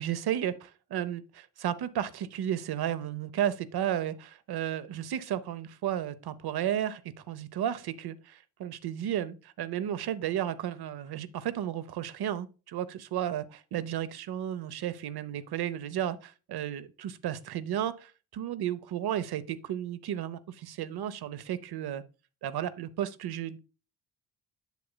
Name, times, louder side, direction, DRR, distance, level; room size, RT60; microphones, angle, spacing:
voice 1, 0.0-7.0 7.3-18.1 18.3-22.0 22.4-23.7, right 10 dB, 70° right, 0.8 m, -33 dB
8.2 x 6.9 x 2.2 m
cardioid pair, 75°, 41 cm